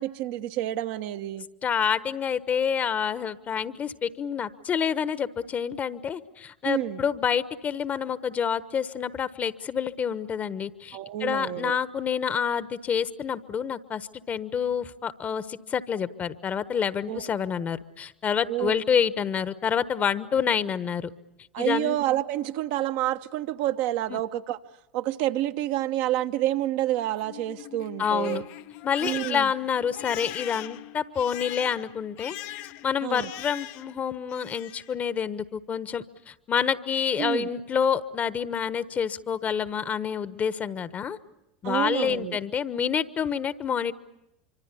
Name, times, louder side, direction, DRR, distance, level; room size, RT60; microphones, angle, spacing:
voice 1, 0.0-1.5 6.6-7.0 10.9-11.8 17.1-17.3 18.5-18.8 21.5-24.6 24.9-28.4 29.0-29.5 33.0-33.3 37.2-37.5 41.6-42.4, right 14 dB, 55° right, 1.1 m, -28 dB
voice 2, 1.6-21.1 21.6-22.0 24.1-24.2 28.0-28.4 28.8-32.4 32.8-41.2 41.6-43.9, left 7 dB, 30° left, 1.3 m, -28 dB
Crying sobbing, 27.0-34.0 34.3-34.9, left 14 dB, 50° left, 1.0 m, -41 dB
26.0 x 25.5 x 8.5 m
figure-of-eight pair, 80°, 5 cm